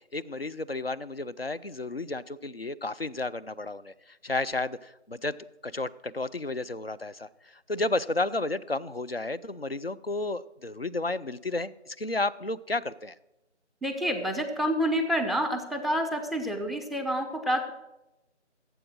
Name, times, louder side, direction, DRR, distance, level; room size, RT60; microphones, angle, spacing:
voice 1, 0.1-5.4 5.6-13.1, left 2 dB, 55° left, 15 dB, 0.5 m, -32 dB
voice 2, 13.8-17.7, equal, ahead, 6 dB, 0.6 m, -28 dB
15.5 x 8.0 x 6.3 m, 0.94 s
figure-of-eight pair, 170°, 36 cm